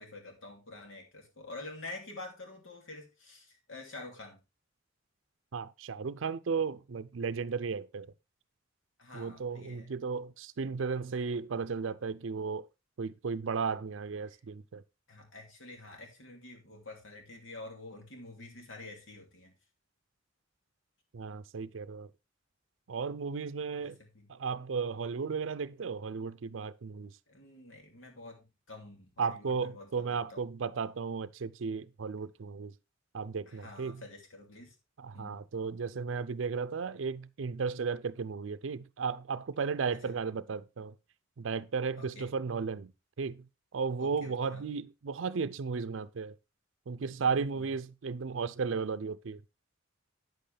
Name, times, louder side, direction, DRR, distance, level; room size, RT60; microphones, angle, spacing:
voice 1, 0.0-4.4 9.0-9.9 15.1-19.5 23.8-24.3 27.3-30.4 33.5-34.7 35.1-35.4 40.0-40.1 41.9-42.3 44.0-44.6 47.5-47.7, left 2 dB, 85° left, 2.7 m, -48 dB
voice 2, 5.5-8.1 9.1-12.7 13.0-14.8 21.1-22.1 22.9-24.0 24.3-27.1 29.2-32.7 33.1-34.0 35.0-40.9 41.4-42.9 43.2-43.4 43.7-46.4 46.9-49.4, right 5 dB, 80° right, 0.5 m, -34 dB
9.1 x 7.8 x 3.3 m
head